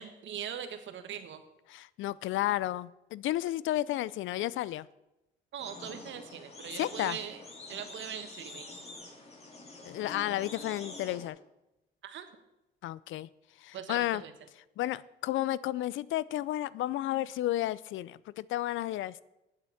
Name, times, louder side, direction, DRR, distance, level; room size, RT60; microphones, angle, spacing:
voice 1, 0.0-1.4 5.5-7.4 7.7-8.7 12.0-12.4 13.7-14.3, right 9 dB, 70° right, 1.3 m, -41 dB
voice 2, 1.7-4.9 6.8-7.2 9.8-11.4 12.8-13.3 13.6-14.2 14.8-19.2, left 14 dB, 75° left, 0.4 m, -32 dB
sound 1, 5.6-11.3, left 2 dB, 30° left, 2.5 m, -46 dB
9.0 x 7.7 x 7.1 m
cardioid pair, 90°, 20 cm